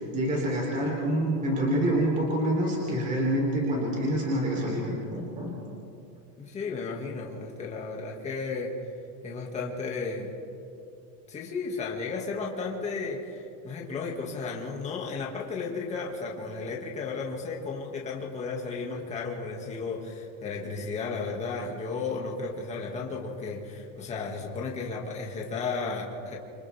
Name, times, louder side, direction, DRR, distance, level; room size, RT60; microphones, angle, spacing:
voice 1, 0.1-5.5, right 1 dB, 20° right, -3 dB, 3.6 m, -27 dB
voice 2, 6.4-8.7 9.2-10.3 11.3-26.4, left 4 dB, 15° left, -2 dB, 2.2 m, -34 dB
28.5 x 26.0 x 3.6 m, 2.7 s
supercardioid pair, 175°, 41 cm